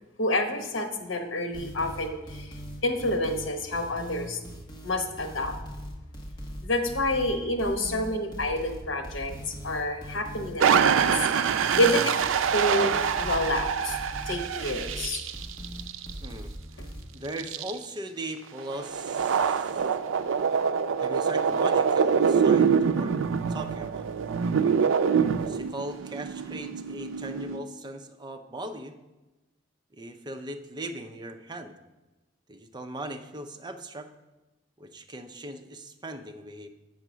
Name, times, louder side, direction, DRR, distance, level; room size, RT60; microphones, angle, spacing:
voice 1, 0.2-4.4 4.8-5.5 6.6-11.4 11.8-12.2 12.5-14.0 14.3-15.2, left 1 dB, 90° left, 5 dB, 1.1 m, -28 dB
sound 1, 1.5-17.0, equal, 25° left, 1.1 m, -40 dB
sound 2, 10.6-16.3 17.4-17.7 18.6-27.6, right 6 dB, 85° right, 0.4 m, -25 dB
voice 2, 16.2-16.8 17.1-19.8 21.0-23.2 23.5-24.1 25.4-29.0 29.9-31.8 32.5-34.1 34.8-36.7, right 1 dB, 20° right, 6 dB, 0.6 m, -39 dB
7.9 x 5.6 x 6.1 m, 1.1 s
head